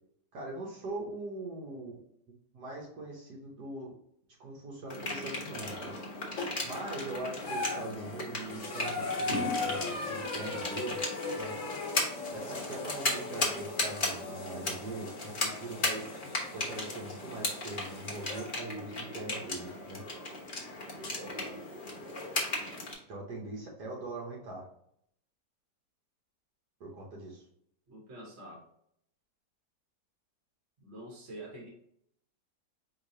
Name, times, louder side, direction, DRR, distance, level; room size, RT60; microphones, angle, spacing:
voice 1, 0.3-2.0 2.5-3.9 4.4-6.0 6.6-11.1 11.4-11.6 12.3-16.1 16.5-20.0 23.1-24.7 26.8-27.4, right 2 dB, 70° right, -2 dB, 1.5 m, -41 dB
sound 1, 4.9-22.9, left 2 dB, 35° left, 1.0 m, -36 dB
sound 2, 6.4-6.8 7.3-18.5 19.7-19.8 21.0-21.1, left 3 dB, 55° left, 1.3 m, -39 dB
voice 2, 21.2-21.6 27.9-28.7 30.8-31.7, right 1 dB, 40° right, -2 dB, 1.5 m, -46 dB
4.8 x 3.3 x 2.7 m, 0.70 s
omnidirectional pair, 1.8 m